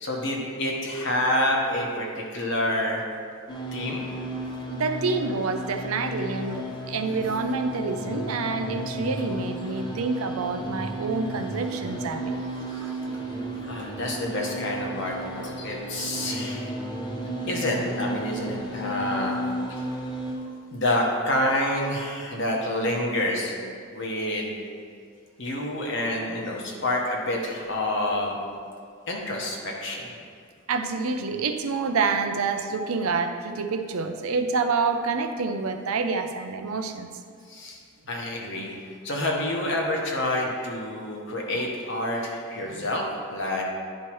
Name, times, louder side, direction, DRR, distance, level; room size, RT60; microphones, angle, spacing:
voice 1, 0.0-3.0 3.7-4.0 12.7-12.9 13.6-16.7 17.5-19.4 20.7-23.6 23.9-24.5 25.4-28.4 29.1-30.1 37.5-37.8 38.1-43.0 43.3-43.6, left 1 dB, 55° left, -1 dB, 1.1 m, -28 dB
sound 1, 3.5-20.3, right 1 dB, 20° left, 0.8 m, -33 dB
voice 2, 4.7-12.4 12.7-12.9 16.4-16.5 17.2-17.3 22.5-22.6 30.7-37.1, right 4 dB, 80° right, 7 dB, 0.5 m, -28 dB
10.5 x 4.6 x 3.1 m, 2.2 s
head